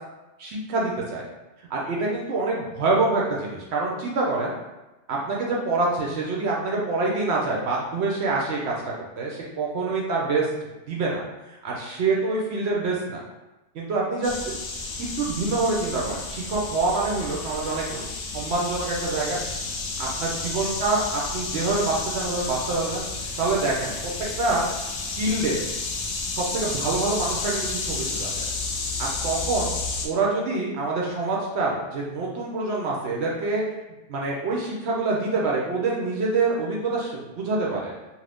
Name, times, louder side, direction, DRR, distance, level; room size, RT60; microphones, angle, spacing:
voice 1, 0.4-1.2 1.7-4.5 5.1-13.2 13.7-14.3 15.0-18.1 18.3-19.4 20.0-23.0 23.4-24.0 24.4-24.6 25.2-25.6 26.4-28.5 29.0-29.7 30.0-33.6 34.1-37.9, right 3 dB, 65° right, -3 dB, 0.8 m, -26 dB
sound 1, 14.2-30.1, left 3 dB, 65° left, 0.7 m, -31 dB
2.6 x 2.5 x 3.3 m, 1.0 s
omnidirectional pair, 1.3 m